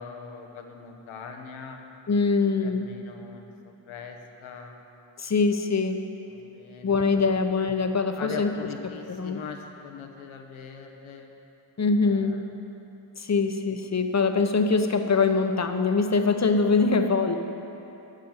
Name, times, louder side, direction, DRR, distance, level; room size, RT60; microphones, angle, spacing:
voice 1, 0.0-1.8 2.6-4.7 6.3-7.2 8.2-11.3 12.0-12.5, left 6 dB, 90° left, 3 dB, 1.2 m, -41 dB
voice 2, 2.1-2.9 5.2-6.0 6.8-8.5 9.1-9.4 11.8-12.4 13.2-17.4, left 4 dB, 35° left, 6 dB, 1.1 m, -23 dB
12.5 x 6.5 x 8.9 m, 3.0 s
cardioid pair, 60°, 47 cm